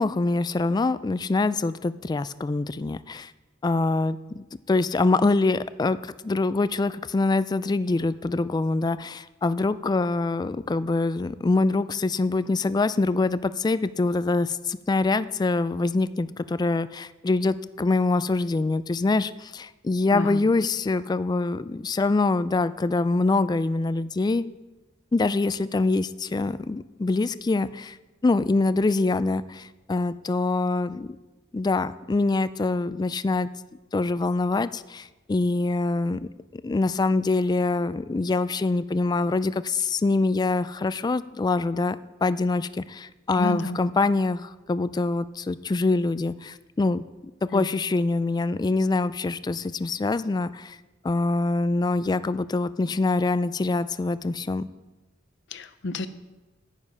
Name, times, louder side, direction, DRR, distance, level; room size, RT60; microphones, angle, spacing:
voice 1, 0.0-3.3 3.6-24.4 25.1-28.0 28.2-31.2 31.5-33.5 33.9-47.0 47.4-50.8 51.0-54.7, left 3 dB, 20° left, 15 dB, 0.3 m, -25 dB
voice 2, 20.1-20.4 43.4-43.8 47.5-47.7 55.5-56.1, left 2 dB, 65° left, 12 dB, 0.7 m, -30 dB
9.7 x 9.3 x 5.5 m, 1.1 s
head